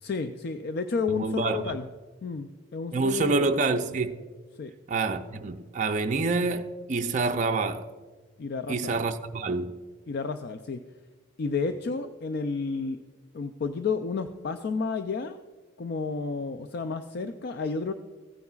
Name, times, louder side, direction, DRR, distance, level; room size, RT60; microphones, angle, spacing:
voice 1, 0.0-1.9 2.2-3.5 4.6-4.7 8.4-9.1 10.1-10.8 11.4-13.0 13.3-15.4 15.8-17.9, left 4 dB, 55° left, 0.4 m, -31 dB
voice 2, 1.1-1.6 2.9-4.2 4.9-7.9 8.7-9.7, right 3 dB, 40° right, 0.4 m, -27 dB
15.5 x 9.4 x 2.3 m
head